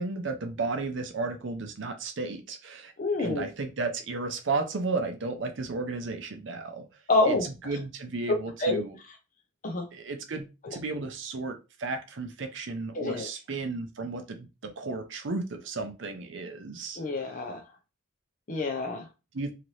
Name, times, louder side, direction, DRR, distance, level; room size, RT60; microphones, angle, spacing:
voice 1, 0.0-2.9 3.2-6.9 7.3-9.0 9.9-17.0 19.3-19.5, right 3 dB, 60° right, 0.6 m, -34 dB
voice 2, 3.0-3.5 7.1-7.5 8.6-8.8 9.6-9.9 10.6-10.8 12.9-13.3 17.0-17.6 18.5-19.1, left 2 dB, 40° left, 0.5 m, -27 dB
2.9 x 2.5 x 3.1 m
head